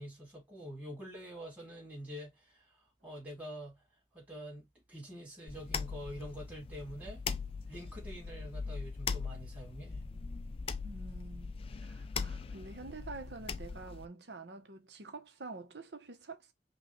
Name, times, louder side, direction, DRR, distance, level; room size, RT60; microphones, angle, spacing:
voice 1, 0.0-3.8 4.1-7.2 7.7-10.0, equal, 10° right, 2.9 m, -46 dB
sound 1, 5.5-14.1, left 5 dB, 35° left, 0.4 m, -40 dB
voice 2, 10.8-11.5 11.8-16.5, right 3 dB, 75° right, 1.0 m, -47 dB
5.3 x 2.4 x 3.1 m
head